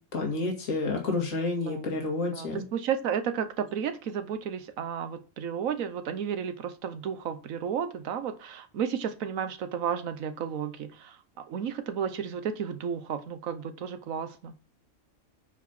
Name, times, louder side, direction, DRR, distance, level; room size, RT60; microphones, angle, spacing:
voice 1, 0.1-2.6, left 3 dB, 65° left, 1 dB, 2.5 m, -29 dB
voice 2, 2.3-14.6, right 8 dB, 70° right, 11 dB, 1.3 m, -33 dB
9.3 x 4.8 x 5.8 m, 0.37 s
omnidirectional pair, 1.5 m